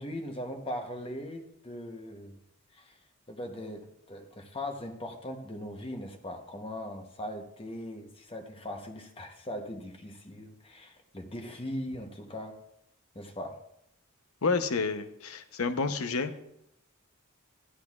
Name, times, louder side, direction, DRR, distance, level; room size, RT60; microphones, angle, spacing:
voice 1, 0.0-2.4 2.7-3.0 3.3-12.6 13.1-13.6, left 1 dB, 25° left, 4 dB, 0.9 m, -40 dB
voice 2, 14.4-16.3, left 4 dB, 90° left, 9 dB, 0.8 m, -29 dB
14.0 x 11.5 x 2.4 m, 0.78 s
head